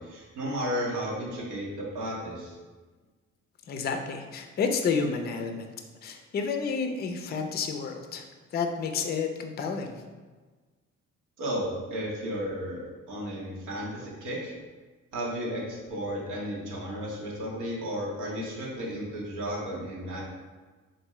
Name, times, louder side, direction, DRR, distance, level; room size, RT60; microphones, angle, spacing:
voice 1, 0.0-2.6 11.4-12.8 13.1-14.5 15.1-20.2, equal, 85° right, -4 dB, 1.0 m, -33 dB
voice 2, 3.7-5.7 6.0-8.3 8.5-10.0, left 5 dB, 35° left, 4 dB, 0.4 m, -30 dB
3.5 x 2.6 x 3.0 m, 1.3 s
cardioid pair, 90°, 30 cm